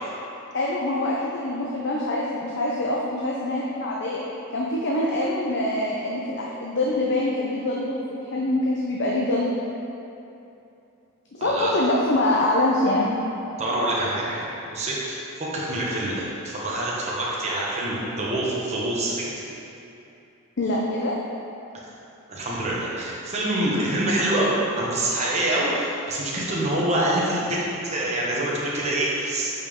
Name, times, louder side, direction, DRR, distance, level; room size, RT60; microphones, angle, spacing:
voice 1, 0.5-4.2 4.5-9.5 11.3-13.1 20.6-21.1, left 1 dB, 50° left, -4 dB, 0.6 m, -24 dB
voice 2, 11.4-11.7 13.6-19.3 22.3-27.6 27.9-29.5, right 1 dB, 30° right, -6 dB, 1.2 m, -26 dB
7.6 x 5.1 x 3.6 m, 2.8 s
head